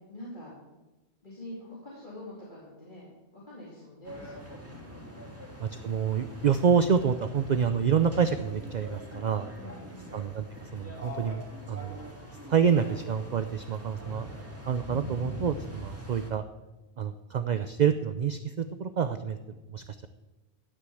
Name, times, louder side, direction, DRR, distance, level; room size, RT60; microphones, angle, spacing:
voice 1, 0.1-0.5 1.2-5.3 9.6-10.1, left 1 dB, 50° left, -6 dB, 3.0 m, -46 dB
sound 1, 4.0-16.3, equal, 15° right, 2.4 m, -43 dB
voice 2, 5.6-9.5 10.1-11.4 11.7-12.0 12.5-14.3 14.7-16.4 17.0-19.4 19.7-20.1, right 7 dB, 50° right, 10 dB, 0.6 m, -27 dB
16.0 x 6.5 x 7.8 m, 1.1 s
omnidirectional pair, 1.1 m